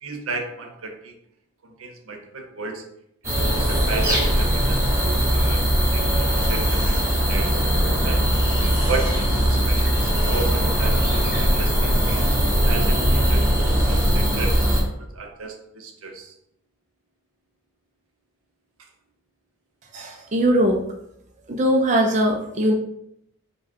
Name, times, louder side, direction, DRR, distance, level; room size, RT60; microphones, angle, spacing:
voice 1, 0.0-1.1 1.6-2.8 3.2-7.6 8.0-8.3 8.9-12.2 12.6-16.3 18.8-18.9, right 3 dB, 80° right, 3 dB, 0.7 m, -34 dB
sound 1, 3.2-14.8, equal, 10° right, 1.0 m, -20 dB
voice 2, 19.9-20.8 21.5-22.7, equal, 35° right, 1 dB, 0.5 m, -20 dB
4.8 x 2.3 x 4.3 m, 0.76 s
head